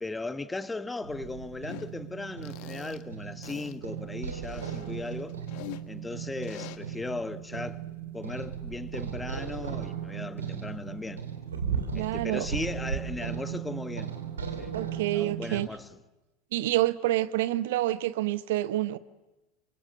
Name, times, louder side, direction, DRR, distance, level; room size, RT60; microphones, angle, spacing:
voice 1, 0.0-5.4 5.9-7.8 8.1-11.3 11.9-14.1 14.6-14.7 15.1-15.9, left 3 dB, 10° left, 1.4 m, -37 dB
sound 1, 1.0-15.7, right 8 dB, 80° right, 2.9 m, -36 dB
sound 2, 1.7-1.9 2.4-3.0 3.4-3.7 4.4-5.8 6.4-6.8, left 16 dB, 55° left, 1.5 m, -44 dB
voice 2, 11.9-12.5 14.7-15.7 16.5-19.0, right 15 dB, 65° right, 0.8 m, -28 dB
28.0 x 24.5 x 7.8 m
figure-of-eight pair, 80°, 0 cm